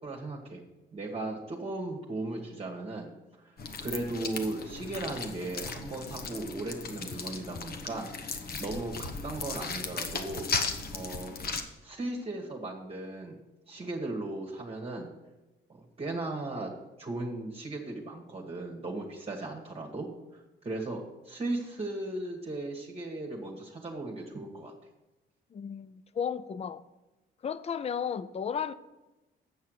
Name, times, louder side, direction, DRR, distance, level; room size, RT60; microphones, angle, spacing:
voice 1, 0.0-0.6 0.9-3.1 3.4-3.5 3.8-10.5 10.9-11.4 11.8-13.4 13.7-15.1 15.7-16.7 17.0-20.1 20.6-24.7, right 2 dB, 30° right, 1.3 m, -37 dB
sound 1, 3.6-11.6, left 4 dB, 50° left, 1.0 m, -36 dB
voice 2, 25.5-26.8 27.4-28.7, left 7 dB, 30° left, 0.4 m, -34 dB
8.4 x 5.7 x 6.3 m
cardioid pair, 90°, 20 cm